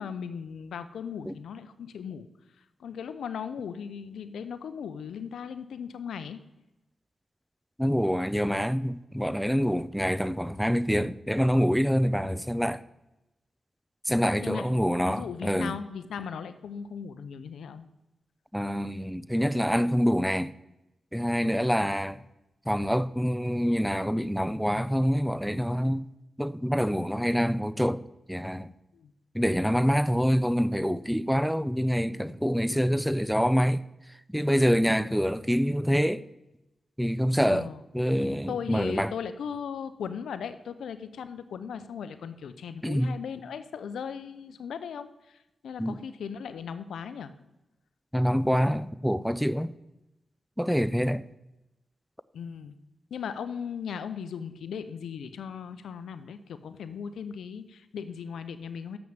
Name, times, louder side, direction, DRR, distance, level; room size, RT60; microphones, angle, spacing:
voice 1, 0.0-2.2 2.8-6.4 14.4-17.8 21.8-21.9 28.9-29.1 37.5-37.8 38.5-45.4 45.6-47.3 52.3-52.7 53.1-59.0, left 7 dB, 85° left, 0.6 m, -37 dB
voice 2, 7.8-12.8 14.1-15.8 18.5-20.5 21.1-22.2 22.7-26.1 26.4-28.0 28.3-28.7 29.3-33.8 34.3-36.2 37.0-37.7 37.9-39.1 42.8-43.1 45.8-46.0 48.1-49.7 50.6-51.3, equal, ahead, 0.5 m, -26 dB
7.3 x 6.1 x 7.3 m
cardioid pair, 50°, 0 cm